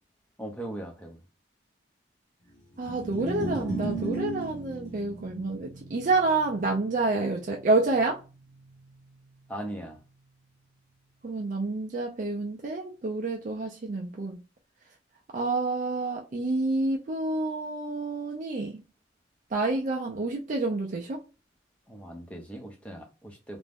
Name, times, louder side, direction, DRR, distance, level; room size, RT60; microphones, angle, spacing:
voice 1, 0.4-1.2 9.5-10.0 21.9-23.6, right 1 dB, 5° left, 0.6 m, -39 dB
sound 1, 2.7-9.1, right 2 dB, 65° left, 0.9 m, -37 dB
voice 2, 2.8-8.2 11.2-14.4 15.3-18.8 19.5-21.2, right 3 dB, 40° right, 0.4 m, -28 dB
2.5 x 2.1 x 3.3 m
head